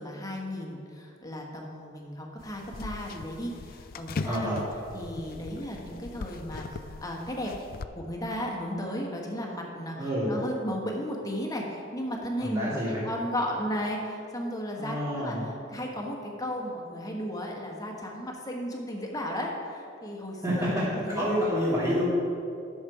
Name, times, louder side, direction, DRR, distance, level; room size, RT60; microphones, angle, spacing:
voice 1, 0.0-4.5 4.9-6.7 7.0-7.5 7.9-10.0 10.3-21.3 21.9-22.0, equal, 20° left, 0 dB, 1.3 m, -35 dB
sound 1, 2.4-7.9, left 4 dB, 50° left, 0.4 m, -40 dB
voice 2, 4.2-4.6 10.0-10.3 12.4-13.0 14.8-15.4 20.4-22.0, equal, 20° right, -12 dB, 2.5 m, -28 dB
10.5 x 6.7 x 4.9 m, 2.6 s
head